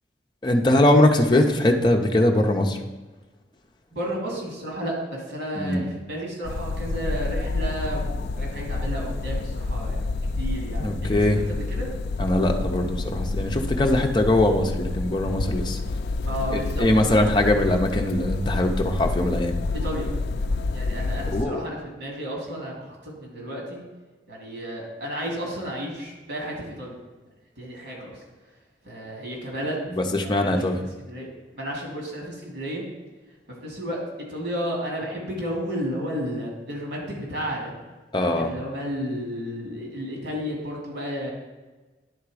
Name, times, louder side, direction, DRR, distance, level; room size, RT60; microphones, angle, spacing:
voice 1, 0.4-2.8 5.6-5.8 10.8-11.4 12.2-15.8 16.5-19.6 21.2-21.7 29.9-30.8 38.1-38.5, left 1 dB, 25° left, 2 dB, 0.7 m, -21 dB
voice 2, 3.9-10.0 10.4-11.9 16.3-16.9 17.1-17.3 19.8-20.1 20.7-23.8 24.3-27.0 27.6-28.2 28.8-29.8 30.2-30.7 31.1-31.3 31.5-32.8 33.6-34.0 34.3-37.7 38.3-41.3, equal, 90° right, -2 dB, 2.5 m, -32 dB
sound 1, 6.4-21.4, left 3 dB, 65° left, 0.4 m, -28 dB
10.5 x 3.6 x 4.9 m, 1.2 s
head